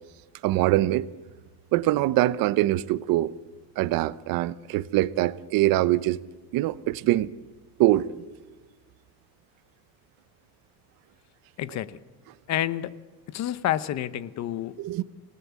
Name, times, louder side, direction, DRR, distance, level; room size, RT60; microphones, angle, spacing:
voice 1, 0.4-1.1 1.7-3.3 3.8-6.2 6.5-7.3 7.8-8.1 14.8-15.0, right 15 dB, 65° right, 0.8 m, -23 dB
voice 2, 11.6-12.0 12.5-12.9 13.3-14.7, left 12 dB, 45° left, 0.9 m, -29 dB
26.5 x 19.0 x 8.3 m
cardioid pair, 175°, 38 cm